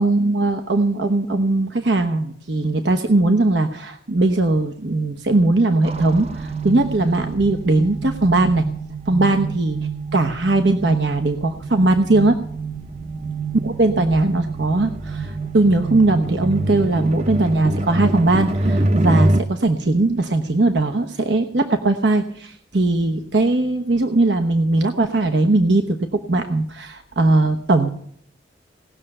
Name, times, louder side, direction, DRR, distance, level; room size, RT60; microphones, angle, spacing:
voice 1, 0.0-8.7 9.1-12.4 13.5-27.9, right 2 dB, 85° right, 6 dB, 1.0 m, -19 dB
sound 1, 5.8-19.4, right 2 dB, 35° right, 0.6 m, -26 dB
18.5 x 6.7 x 9.8 m, 0.65 s
head